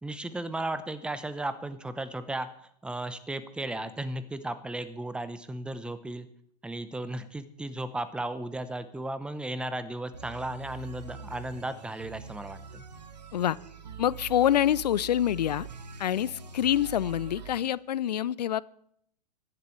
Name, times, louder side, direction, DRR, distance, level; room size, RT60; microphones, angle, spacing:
voice 1, 0.0-2.5 2.8-6.3 6.6-12.8, right 1 dB, 5° right, 13 dB, 0.7 m, -35 dB
sound 1, 10.1-17.7, right 6 dB, 80° right, 1.3 m, -44 dB
voice 2, 14.0-15.7 16.0-18.6, left 11 dB, 80° left, 22 dB, 0.4 m, -26 dB
22.0 x 10.5 x 3.2 m, 0.69 s
hypercardioid pair, 105°, 21 cm